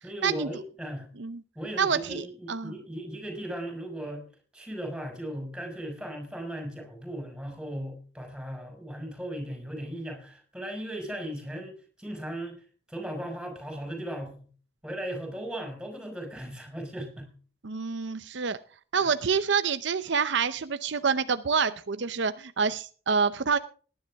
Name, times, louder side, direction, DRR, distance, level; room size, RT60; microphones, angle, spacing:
voice 1, 0.0-1.1 1.5-4.2 4.5-12.6 12.9-14.5 14.8-17.3 18.9-19.1, right 1 dB, 5° right, 3 dB, 4.9 m, -37 dB
voice 2, 1.8-2.7 17.6-18.6 18.9-23.6, right 5 dB, 65° right, 12 dB, 0.7 m, -27 dB
18.5 x 10.5 x 3.5 m, 0.39 s
head